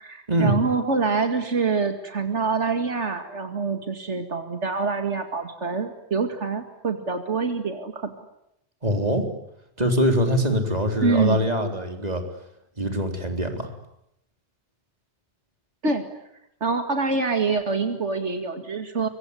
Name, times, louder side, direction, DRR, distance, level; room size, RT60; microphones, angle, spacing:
voice 1, 0.0-8.1 11.0-11.4 15.8-16.1 16.6-19.1, right 4 dB, 80° right, 6 dB, 2.5 m, -25 dB
voice 2, 8.8-9.3 9.8-12.2 12.8-13.7, equal, 35° right, 5 dB, 4.1 m, -23 dB
25.5 x 24.0 x 9.9 m, 0.80 s
omnidirectional pair, 1.2 m